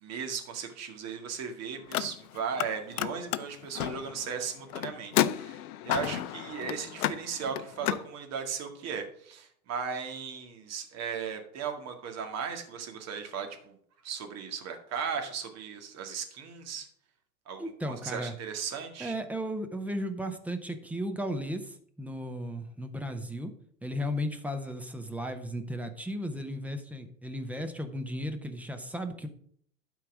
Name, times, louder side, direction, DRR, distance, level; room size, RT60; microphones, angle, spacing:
voice 1, 0.0-13.7 14.0-16.9 17.5-19.1, right 6 dB, 30° right, 5 dB, 2.0 m, -37 dB
Car, 1.8-2.7 2.9-8.0, left 13 dB, 60° left, 0.7 m, -32 dB
voice 2, 17.6-18.3 19.0-23.5 23.8-29.3, equal, 5° right, 6 dB, 0.5 m, -35 dB
12.0 x 4.6 x 6.1 m, 0.64 s
hypercardioid pair, 115°, 49 cm